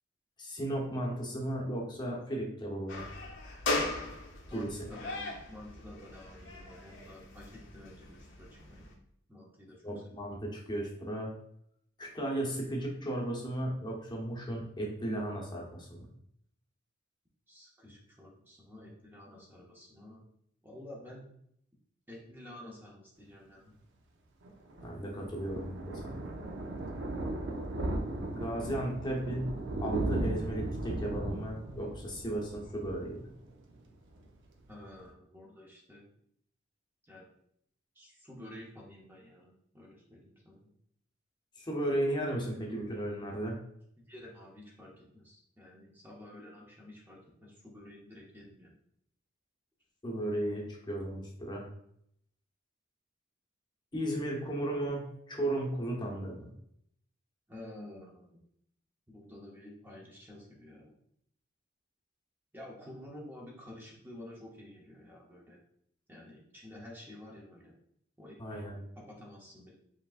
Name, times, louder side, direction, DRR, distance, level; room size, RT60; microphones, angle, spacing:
voice 1, 0.4-3.1 4.5-4.8 9.8-11.3 12.0-16.1 24.8-26.2 28.3-29.6 29.8-33.3 41.6-43.5 50.0-51.7 53.9-56.5 68.4-68.8, right 1 dB, 20° left, -2 dB, 0.8 m, -35 dB
sound 1, 2.9-8.9, left 2 dB, 65° left, 0.9 m, -38 dB
voice 2, 4.5-8.9 9.3-10.0 17.5-20.3 20.6-21.2 22.1-23.7 34.7-36.1 37.0-37.2 37.9-40.7 44.0-48.7 57.5-58.4 59.1-60.9 62.5-65.6 66.1-67.7 68.2-68.6 69.1-69.7, left 1 dB, 10° right, -3 dB, 0.7 m, -50 dB
Thunder, 24.4-33.8 34.1-34.4 34.7-34.8 35.0-35.1, right 2 dB, 60° right, 0.6 m, -37 dB
4.9 x 3.3 x 2.4 m, 0.71 s
head